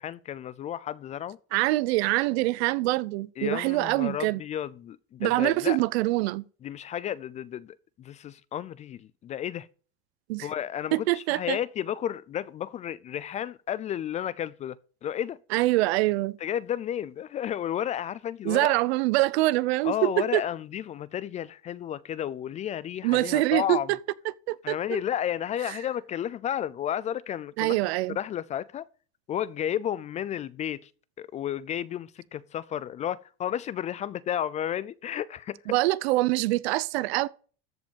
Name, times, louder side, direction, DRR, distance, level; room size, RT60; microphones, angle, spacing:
voice 1, 0.0-1.4 3.4-5.8 6.6-9.7 10.4-14.8 15.0-15.4 16.4-18.8 19.8-23.9 24.6-27.8 28.1-28.9 29.3-30.9 31.2-35.6, left 10 dB, 25° left, 0.3 m, -32 dB
voice 2, 1.5-4.4 5.2-6.4 10.3-10.5 10.9-11.6 15.5-16.4 18.4-20.4 23.0-24.0 24.5-25.0 27.6-28.2 35.7-37.3, right 19 dB, 85° right, 0.7 m, -25 dB
14.0 x 5.2 x 5.2 m
supercardioid pair, 150°, 31 cm